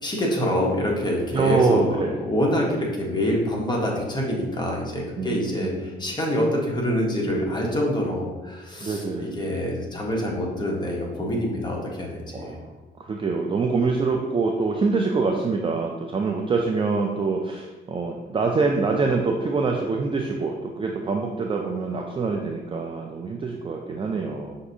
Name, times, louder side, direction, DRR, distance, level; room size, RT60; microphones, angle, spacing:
voice 1, 0.0-12.5, equal, 20° left, -2 dB, 1.0 m, -26 dB
voice 2, 1.3-2.2 5.2-6.0 8.8-9.4 12.3-12.7 13.0-24.6, right 4 dB, 25° right, 1 dB, 0.4 m, -25 dB
5.8 x 2.6 x 2.6 m, 1.2 s
cardioid pair, 90°, 20 cm